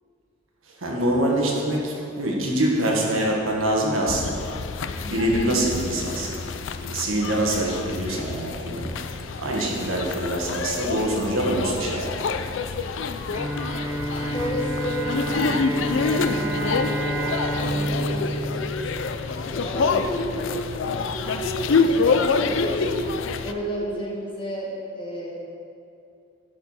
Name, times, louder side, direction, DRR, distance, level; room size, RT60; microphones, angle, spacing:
voice 1, 0.7-4.5 5.0-6.4 6.8-8.9 9.4-12.5, right 1 dB, 80° right, -1 dB, 1.5 m, -25 dB
sound 1, 4.1-23.5, left 4 dB, 65° left, 0.4 m, -27 dB
Bowed string instrument, 13.3-19.5, right 1 dB, 10° right, 0.6 m, -29 dB
voice 2, 14.1-18.9 19.5-23.1 23.4-25.3, equal, 25° left, -3 dB, 1.4 m, -32 dB
11.5 x 4.6 x 5.7 m, 2.6 s
head